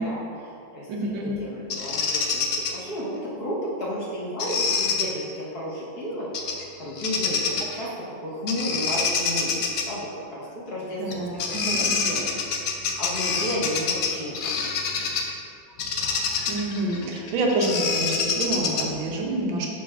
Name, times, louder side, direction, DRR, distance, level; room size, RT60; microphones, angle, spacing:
voice 1, 0.0-7.9 8.2-12.3 12.6-15.1, equal, 55° left, -7 dB, 1.8 m, -33 dB
voice 2, 0.9-1.4 11.0-12.0 16.5-19.7, right 1 dB, 80° right, -1 dB, 1.6 m, -27 dB
Bird vocalization bird call bird song, 1.7-2.7 4.4-5.1 6.3-6.6 7.0-7.8 8.5-9.9 11.1-11.2 11.4-15.3 15.8-19.0, left 5 dB, 80° left, 0.7 m, -26 dB
11.5 x 4.0 x 2.5 m, 2.5 s
omnidirectional pair, 2.2 m